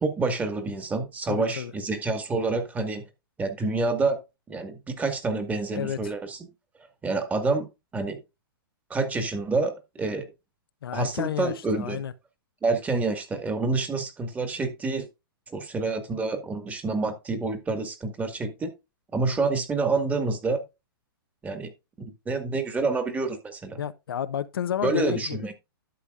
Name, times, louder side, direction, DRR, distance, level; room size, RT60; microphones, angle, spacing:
voice 1, 0.0-3.0 3.4-4.2 4.5-6.4 7.0-7.7 7.9-8.2 8.9-10.3 10.9-12.0 12.6-15.1 15.5-18.7 19.1-20.6 21.4-21.7 22.0-23.8 24.8-25.5, right 3 dB, 10° right, 1.7 m, -28 dB
voice 2, 1.3-1.7 5.7-6.1 10.8-12.1 23.8-25.5, left 9 dB, 75° left, 0.7 m, -31 dB
11.5 x 7.3 x 2.4 m
hypercardioid pair, 130°, 12 cm